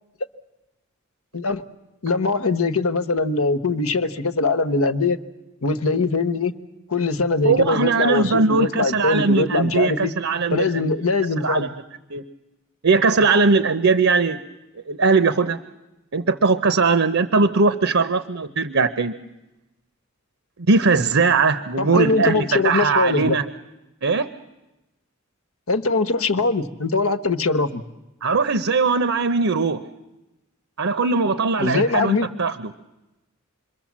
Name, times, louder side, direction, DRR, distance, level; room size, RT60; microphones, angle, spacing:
voice 1, 2.0-5.2 5.6-6.5 6.9-10.1 10.5-11.7 21.8-23.4 25.7-27.8 31.6-32.3, left 3 dB, 80° left, 10 dB, 1.1 m, -22 dB
voice 2, 7.4-10.9 11.4-11.7 12.1-12.2 12.8-14.4 14.9-15.6 16.1-19.1 20.7-23.5 24.0-24.3 28.2-29.8 30.8-32.7, right 4 dB, 65° right, 12 dB, 0.8 m, -20 dB
27.5 x 22.5 x 7.4 m, 1.0 s
head